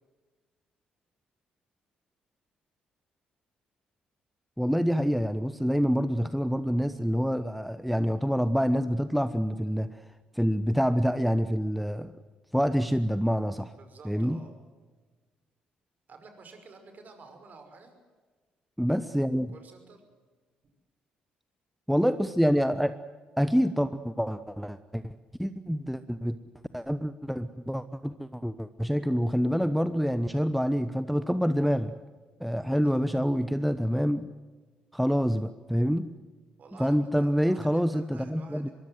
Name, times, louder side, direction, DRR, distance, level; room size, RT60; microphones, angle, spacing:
voice 1, 4.6-10.1 10.3-12.1 12.5-13.7 14.0-14.4 18.8-19.5 21.9-23.0 23.4-26.4 26.7-31.9 32.4-34.3 34.9-36.1 36.8-38.7, equal, ahead, 13 dB, 1.1 m, -27 dB
voice 2, 13.7-14.5 16.1-17.9 19.5-20.0 32.9-33.0 36.6-38.7, right 4 dB, 45° right, 6 dB, 5.7 m, -50 dB
24.0 x 23.0 x 7.9 m, 1.3 s
figure-of-eight pair, 45°, 4 cm